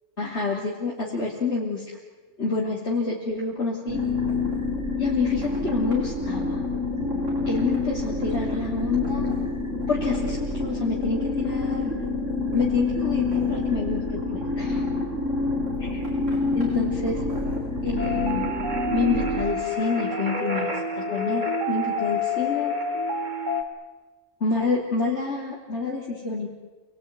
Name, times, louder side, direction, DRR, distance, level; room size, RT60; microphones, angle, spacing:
voice 1, 0.2-2.0 2.4-4.0 5.0-6.6 7.5-9.2 9.9-12.0 12.5-14.8 15.8-16.0 16.5-17.2 17.8-18.5 18.9-22.7 24.4-26.5, left 4 dB, 60° left, -4 dB, 3.6 m, -28 dB
sound 1, 3.9-19.4, left 3 dB, 85° right, 6.1 m, -27 dB
sound 2, 18.0-23.6, left 1 dB, 40° right, 2.5 m, -28 dB
28.0 x 20.0 x 9.6 m, 1.3 s
omnidirectional pair, 1.3 m